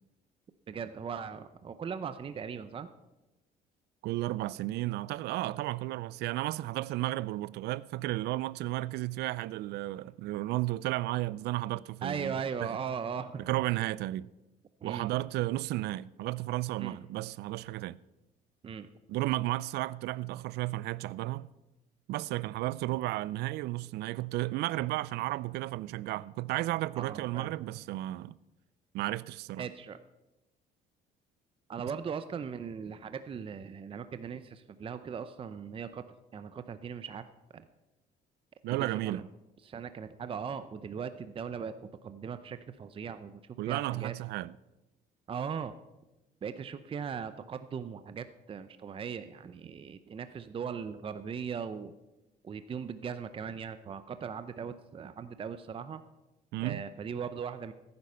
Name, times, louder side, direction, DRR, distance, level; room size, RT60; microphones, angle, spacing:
voice 1, 0.7-2.9 12.0-13.4 14.8-15.1 16.8-17.0 18.6-18.9 27.0-27.5 29.6-30.0 31.7-36.0 36.3-37.2 37.5-37.7 38.7-39.2 39.6-41.8 42.0-43.4 43.7-44.1 45.3-45.7 46.4-51.9 52.4-56.0 56.6-57.7, right 6 dB, 30° right, 0.6 m, -39 dB
voice 2, 4.0-12.8 13.5-14.3 14.8-18.0 19.1-21.5 22.1-28.3 28.9-29.6 31.8-31.9 38.6-39.2 43.6-44.5 56.5-56.8, right 17 dB, 75° right, 0.4 m, -33 dB
15.0 x 9.6 x 5.6 m
cardioid pair, 110°, 17 cm